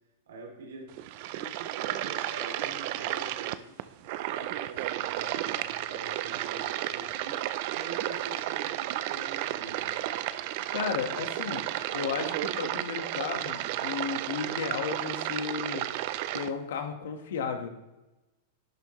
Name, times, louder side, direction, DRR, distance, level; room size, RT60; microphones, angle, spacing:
voice 1, 0.3-7.4 7.7-9.9, right 3 dB, 90° right, 0 dB, 3.0 m, -46 dB
sound 1, 0.9-16.5, right 14 dB, 50° right, 0.5 m, -33 dB
voice 2, 10.7-15.9 16.3-17.7, left 6 dB, 75° left, 5 dB, 1.4 m, -34 dB
11.5 x 9.8 x 3.1 m, 1.0 s
supercardioid pair, 140°, 0 cm